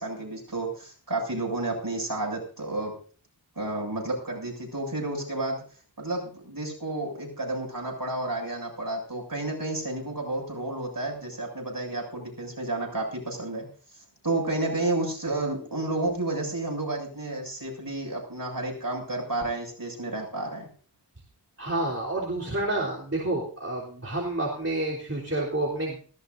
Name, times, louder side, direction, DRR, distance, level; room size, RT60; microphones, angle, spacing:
voice 1, 0.0-2.9 3.6-5.6 6.0-13.7 14.2-20.7, right 2 dB, 55° right, 0 dB, 7.3 m, -31 dB
voice 2, 21.6-26.0, right 2 dB, 35° right, -5 dB, 3.7 m, -29 dB
19.5 x 16.5 x 2.7 m, 0.41 s
wide cardioid pair, 40°, 42 cm